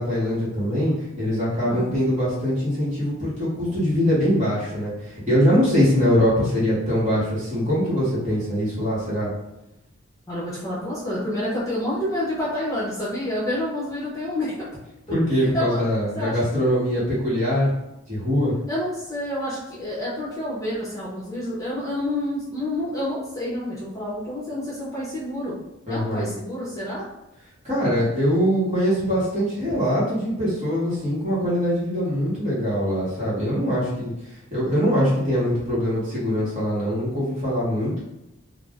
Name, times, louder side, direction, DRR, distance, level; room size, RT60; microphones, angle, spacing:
voice 1, 0.0-9.3 15.1-17.7 18.1-18.5 25.9-26.3 27.6-34.1 34.5-38.0, equal, 35° right, -8 dB, 1.1 m, -22 dB
voice 2, 10.3-14.5 15.5-15.8 16.1-16.4 18.7-25.5 25.9-27.1 29.7-29.8, left 1 dB, 15° left, -8 dB, 0.7 m, -28 dB
2.4 x 2.0 x 3.4 m, 0.89 s
head